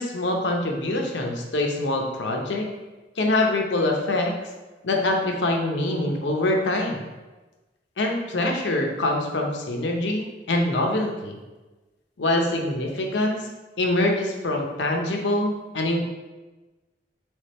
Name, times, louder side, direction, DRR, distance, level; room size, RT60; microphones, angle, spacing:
voice 1, 0.0-2.7 3.2-4.3 4.8-7.0 8.0-11.4 12.2-13.5 13.8-16.0, left 1 dB, 90° left, 1 dB, 0.7 m, -24 dB
3.4 x 3.2 x 4.2 m, 1.2 s
head